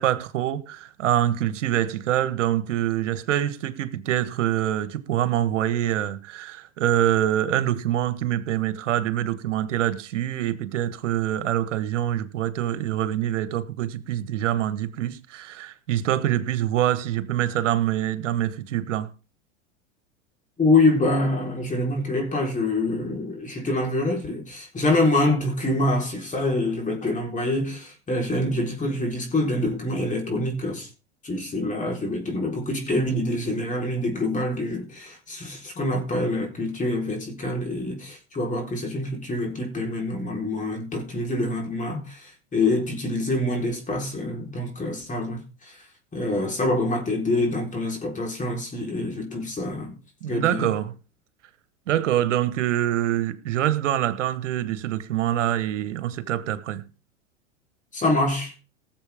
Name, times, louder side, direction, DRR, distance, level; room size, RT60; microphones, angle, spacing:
voice 1, 0.0-19.1 50.2-50.9 51.9-56.8, right 12 dB, 80° right, 1.5 m, -25 dB
voice 2, 20.6-30.9 31.2-45.8 46.1-49.9 50.3-50.6 57.9-58.5, left 2 dB, 20° left, 4.2 m, -25 dB
18.5 x 7.7 x 3.6 m
hypercardioid pair, 105°, 36 cm